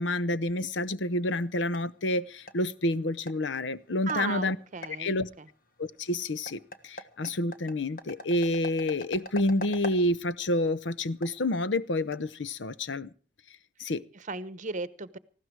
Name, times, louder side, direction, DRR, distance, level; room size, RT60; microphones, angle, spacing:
voice 1, 0.0-4.6 5.0-5.3 5.8-13.1 13.8-14.0, left 1 dB, 70° left, 0.8 m, -29 dB
sound 1, 1.1-12.9, left 1 dB, 50° left, 1.5 m, -46 dB
voice 2, 4.1-5.5 14.1-15.2, right 4 dB, 45° right, 0.9 m, -36 dB
19.0 x 15.5 x 4.7 m
head